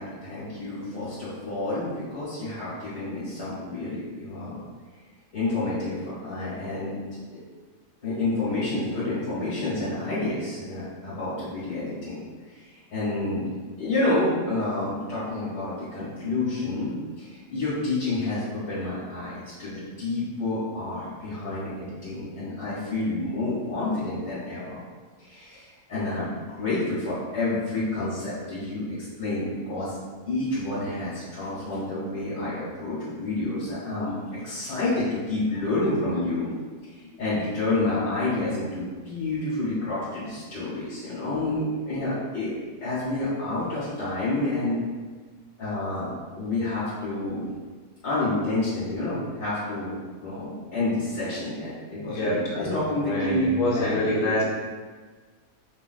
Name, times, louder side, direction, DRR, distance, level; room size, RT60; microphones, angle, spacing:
voice 1, 0.0-4.6 5.3-7.2 8.0-12.2 12.5-13.5 13.8-24.8 25.2-28.8 29.2-30.0 30.3-34.2 34.4-36.5 36.8-42.5 42.8-44.8 45.6-47.5 48.0-50.0 50.2-54.2, left 2 dB, 80° left, -11 dB, 2.2 m, -29 dB
voice 2, 52.0-52.7 53.0-54.4, left 1 dB, 55° left, -5 dB, 1.4 m, -26 dB
5.8 x 3.8 x 2.3 m, 1.4 s
omnidirectional pair, 1.6 m